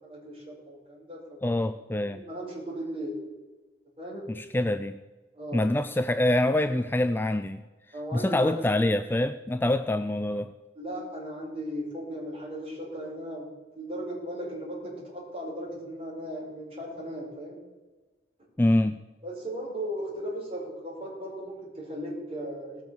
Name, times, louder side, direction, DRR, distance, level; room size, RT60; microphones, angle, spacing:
voice 1, 0.0-1.2 2.2-3.2 4.0-4.3 5.3-5.6 7.9-8.6 10.7-13.5 13.7-17.6 19.2-22.8, equal, 30° right, -4 dB, 5.1 m, -37 dB
voice 2, 1.4-2.2 4.3-5.0 5.5-7.6 8.1-10.5 18.6-19.0, left 1 dB, 10° left, 10 dB, 0.3 m, -25 dB
18.5 x 6.3 x 6.9 m, 1.2 s
head